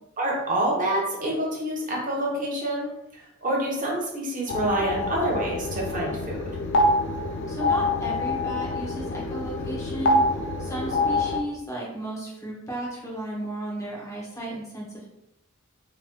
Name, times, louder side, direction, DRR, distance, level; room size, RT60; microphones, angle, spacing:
voice 1, 0.2-2.9 3.4-6.6, right 1 dB, 40° right, -2 dB, 0.8 m, -27 dB
sound 1, 4.5-11.4, left 2 dB, 55° left, 0.3 m, -26 dB
voice 2, 7.5-10.2 10.6-15.0, right 1 dB, 15° left, -5 dB, 0.8 m, -34 dB
3.1 x 2.8 x 2.2 m, 0.84 s
head